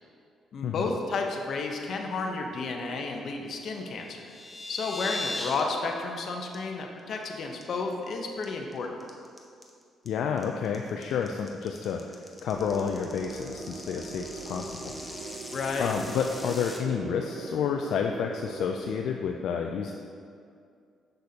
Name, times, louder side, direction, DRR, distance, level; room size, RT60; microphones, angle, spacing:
voice 1, 0.5-4.3 4.7-9.0 15.5-16.0, left 4 dB, 60° left, 2 dB, 0.8 m, -32 dB
sound 1, 3.9-5.6 5.9-6.2 6.5-6.6 7.0-7.2 7.6-8.1 8.4-16.8, left 2 dB, 10° left, 0.8 m, -40 dB
voice 2, 10.1-14.9 15.8-19.9, left 7 dB, 80° left, 3 dB, 0.3 m, -30 dB
sound 2, 12.5-18.9, right 4 dB, 50° right, 0.5 m, -41 dB
6.6 x 6.1 x 2.8 m, 2.3 s
cardioid pair, 90°, 0 cm